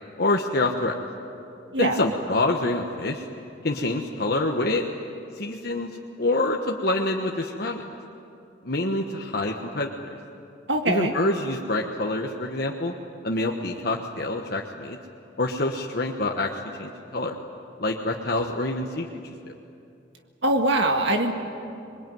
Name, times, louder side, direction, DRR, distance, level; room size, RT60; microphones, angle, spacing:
voice 1, 0.2-0.9 1.8-3.3 3.6-4.8 5.3-5.9 6.2-7.8 8.6-10.2 10.9-12.9 13.2-15.0 15.4-16.5 16.8-17.3 17.8-19.5, left 2 dB, 55° left, 0 dB, 1.3 m, -26 dB
voice 2, 10.7-11.1 20.4-21.3, right 2 dB, 70° right, 3 dB, 1.9 m, -22 dB
26.5 x 22.0 x 9.3 m, 2.7 s
head